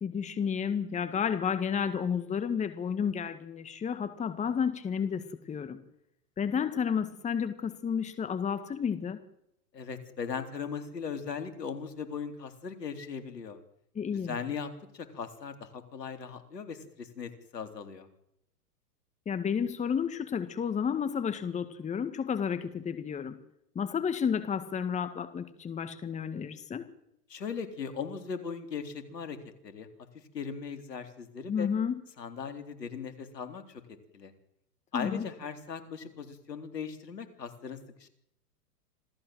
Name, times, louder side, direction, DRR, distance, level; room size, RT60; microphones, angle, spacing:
voice 1, 0.0-5.8 6.4-9.2 13.9-14.4 19.2-23.4 23.7-26.9 31.5-32.0 34.9-35.3, left 7 dB, 15° left, 11 dB, 1.7 m, -31 dB
voice 2, 9.7-13.6 14.2-18.1 27.3-29.4 29.6-29.9 30.3-31.7 32.2-34.3 34.9-38.1, left 6 dB, 80° left, 7 dB, 3.8 m, -39 dB
27.0 x 17.0 x 7.8 m, 0.77 s
hypercardioid pair, 115°, 48 cm